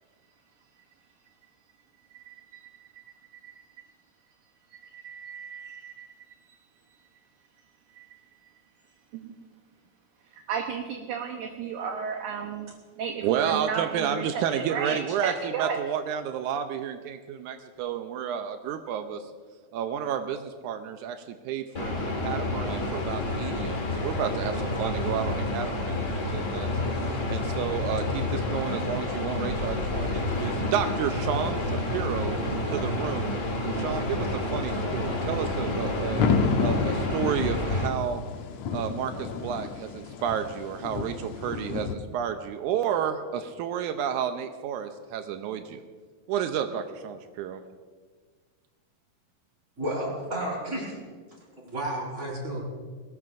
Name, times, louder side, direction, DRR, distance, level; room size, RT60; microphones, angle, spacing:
voice 1, 4.7-6.1 8.0-8.1 9.1-9.3 10.3-15.8, right 6 dB, 70° right, 3 dB, 2.1 m, -34 dB
voice 2, 13.2-19.3 19.7-26.0 26.3-26.7 27.3-32.3 32.7-33.4 33.7-36.2 36.6-38.2 38.7-45.8 46.3-47.6, right 8 dB, 85° right, 7 dB, 1.8 m, -31 dB
sound 1, 21.7-37.9, left 2 dB, 40° left, 1.0 m, -29 dB
sound 2, 22.7-42.0, left 5 dB, 80° left, 1.6 m, -35 dB
voice 3, 49.8-51.0 51.6-52.6, right 1 dB, 20° right, -4 dB, 5.5 m, -31 dB
21.5 x 19.5 x 2.6 m, 1.6 s
omnidirectional pair, 4.2 m